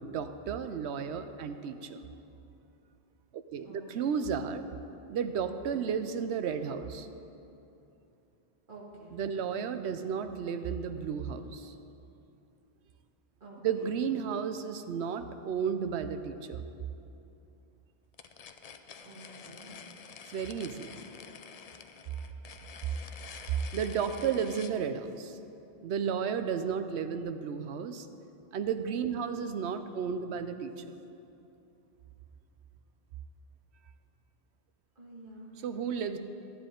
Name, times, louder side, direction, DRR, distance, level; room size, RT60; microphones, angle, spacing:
voice 1, 0.0-2.0 3.3-4.6 5.1-7.1 9.1-11.7 13.6-16.6 20.3-21.0 23.7-25.4 25.8-28.1 28.5-30.9 35.6-36.2, right 7 dB, 85° right, 10 dB, 0.9 m, -33 dB
voice 2, 3.6-4.2 8.7-9.2 13.4-14.0 19.0-19.8 29.4-29.5 35.0-35.5, right 2 dB, 50° right, -5 dB, 2.0 m, -50 dB
sound 1, 18.1-24.8, left 6 dB, 55° left, 0.4 m, -48 dB
12.5 x 9.6 x 3.7 m, 2.8 s
omnidirectional pair, 1.1 m